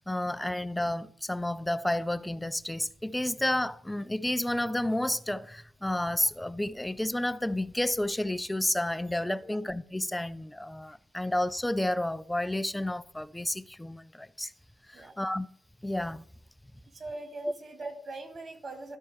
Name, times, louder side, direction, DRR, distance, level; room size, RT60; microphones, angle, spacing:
voice 1, 0.1-14.5 14.9-15.5 15.8-16.2 17.4-17.5, left 1 dB, 5° left, 0.4 m, -31 dB
voice 2, 16.9-19.0, right 2 dB, 45° right, 2.3 m, -41 dB
13.0 x 4.5 x 4.8 m
cardioid pair, 90°, 0 cm